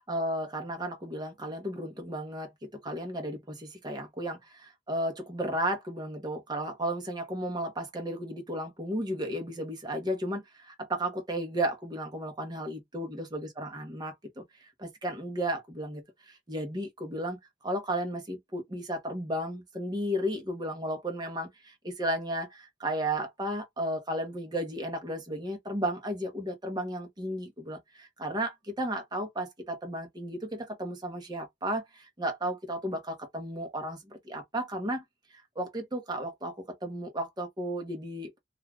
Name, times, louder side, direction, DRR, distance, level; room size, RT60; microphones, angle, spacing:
voice 1, 0.0-17.4 17.6-35.0 35.3-38.4, right 1 dB, 20° right, 0.9 m, -34 dB
2.4 x 2.4 x 3.2 m
head